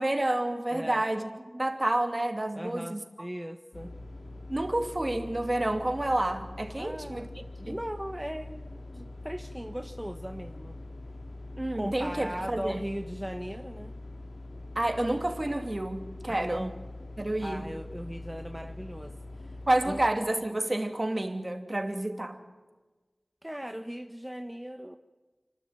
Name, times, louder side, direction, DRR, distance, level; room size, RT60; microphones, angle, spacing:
voice 1, 0.0-3.0 4.5-7.3 7.7-7.8 11.6-12.8 14.8-16.7 17.2-17.7 19.7-22.4, right 1 dB, 35° right, 5 dB, 2.6 m, -29 dB
voice 2, 0.7-1.0 2.5-4.0 6.8-7.3 7.6-10.8 11.7-13.9 16.3-16.7 17.4-19.6 19.9-20.0 23.4-25.0, equal, 10° right, 7 dB, 1.0 m, -38 dB
sound 1, 3.7-20.1, left 2 dB, 85° left, 2.2 m, -43 dB
29.5 x 12.5 x 9.2 m, 1.3 s
wide cardioid pair, 60°, 0 cm